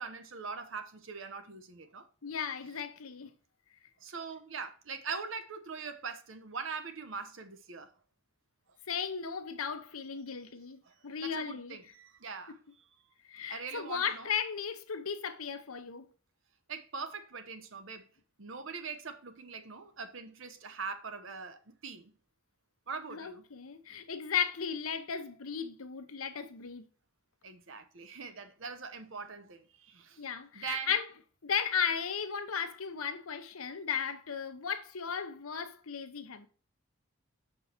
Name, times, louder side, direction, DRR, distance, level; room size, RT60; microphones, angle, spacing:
voice 1, 0.0-2.1 4.0-7.9 10.8-10.9 11.2-12.6 13.5-14.3 16.7-18.1 18.4-22.1 22.9-23.4 27.4-30.2 30.5-30.9, right 5 dB, 65° right, 0.9 m, -42 dB
voice 2, 2.2-3.3 8.9-11.8 12.5-12.6 13.3-16.1 23.1-26.8 30.2-31.0 31.4-36.5, left 7 dB, 85° left, 0.9 m, -35 dB
6.9 x 4.6 x 4.4 m
head